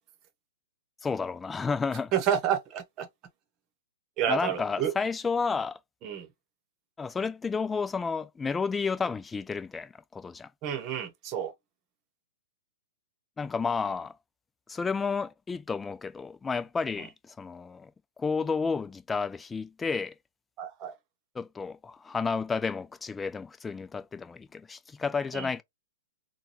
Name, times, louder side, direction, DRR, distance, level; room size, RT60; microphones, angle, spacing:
voice 1, 1.0-2.1 4.3-5.8 7.0-10.5 13.4-14.2 14.7-17.9 18.2-20.1 21.3-25.6, left 5 dB, 10° left, 0.4 m, -31 dB
voice 2, 2.1-3.1 4.2-4.9 6.0-6.3 10.6-11.5 20.6-20.9 25.3-25.5, right 9 dB, 35° right, 1.1 m, -29 dB
3.8 x 2.3 x 3.0 m
hypercardioid pair, 115°, 0 cm